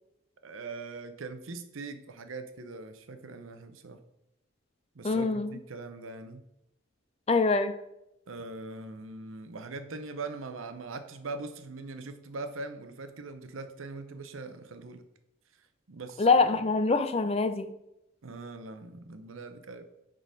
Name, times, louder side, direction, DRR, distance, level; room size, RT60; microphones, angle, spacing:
voice 1, 0.4-4.0 4.9-6.4 8.3-15.0 15.9-16.6 18.2-19.9, right 3 dB, 80° right, 8 dB, 0.7 m, -41 dB
voice 2, 5.0-5.6 7.3-7.8 16.2-17.7, left 3 dB, 30° left, 10 dB, 0.4 m, -24 dB
6.4 x 3.8 x 5.1 m, 0.85 s
head